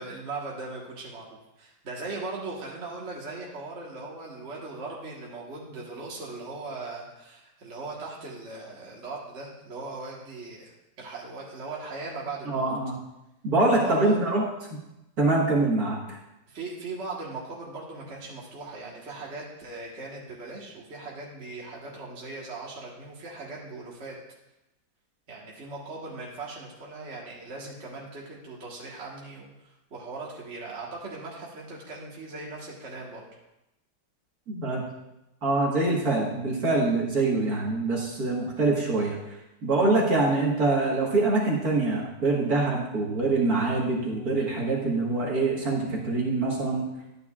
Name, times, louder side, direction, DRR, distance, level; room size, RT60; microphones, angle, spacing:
voice 1, 0.0-12.7 13.8-14.2 16.5-24.2 25.3-33.3, right 3 dB, 40° right, -3 dB, 1.7 m, -39 dB
voice 2, 12.5-12.9 13.4-14.4 15.2-16.2 34.5-34.9 35.4-39.2 39.6-46.9, right 2 dB, 55° right, -2 dB, 2.0 m, -24 dB
12.0 x 9.3 x 2.4 m, 0.92 s
omnidirectional pair, 1.9 m